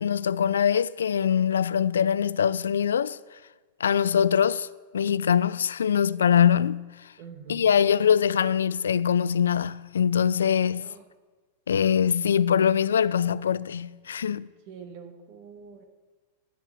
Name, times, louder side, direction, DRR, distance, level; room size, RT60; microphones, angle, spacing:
voice 1, 0.0-3.2 3.8-4.7 4.9-7.1 7.5-10.9 11.7-14.5, left 8 dB, 85° left, 0.3 m, -23 dB
voice 2, 7.2-7.7 10.8-11.0 14.7-15.8, right 6 dB, 55° right, 1.7 m, -45 dB
12.0 x 7.3 x 8.1 m
hypercardioid pair, 105°, 0 cm